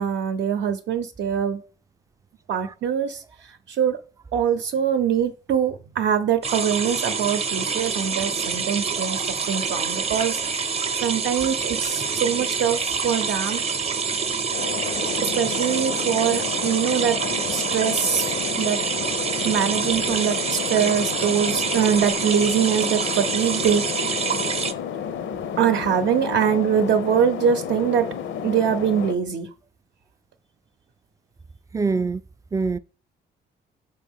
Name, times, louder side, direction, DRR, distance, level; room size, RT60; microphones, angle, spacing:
voice 1, 0.0-1.6 2.5-4.0 4.3-10.7 11.0-13.6 15.2-17.2 17.5-18.8 19.4-24.2 25.6-28.1 28.4-29.5, right 8 dB, 65° right, 0.7 m, -23 dB
sound 1, 6.4-24.7, right 5 dB, 30° right, 0.7 m, -26 dB
sound 2, 14.5-29.1, left 8 dB, 75° left, 0.6 m, -31 dB
voice 2, 31.7-32.2 32.5-32.8, right 4 dB, 15° right, 0.3 m, -24 dB
6.5 x 4.3 x 3.6 m
cardioid pair, 90°, 20 cm